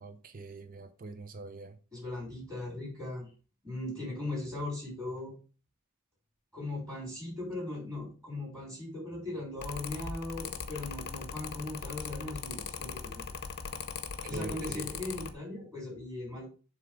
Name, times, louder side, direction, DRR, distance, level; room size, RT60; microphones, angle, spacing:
voice 1, 0.0-1.7 14.3-14.8, right 3 dB, 40° right, 0.6 m, -43 dB
voice 2, 1.9-3.3 3.6-5.4 6.5-13.3 14.3-16.5, left 2 dB, 15° right, 3.7 m, -39 dB
Mechanical fan, 9.6-15.3, left 6 dB, 45° left, 0.7 m, -40 dB
7.2 x 3.4 x 5.0 m
head